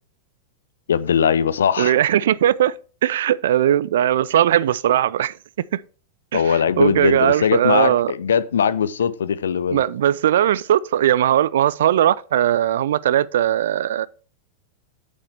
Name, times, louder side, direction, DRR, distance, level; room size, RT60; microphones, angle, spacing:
voice 1, 0.9-1.9 6.3-9.8, left 7 dB, 65° left, 0.6 m, -20 dB
voice 2, 1.8-5.4 5.7-5.8 6.3-8.1 9.7-14.1, right 11 dB, 60° right, 0.4 m, -19 dB
8.8 x 8.6 x 3.4 m
figure-of-eight pair, 90°, 0 cm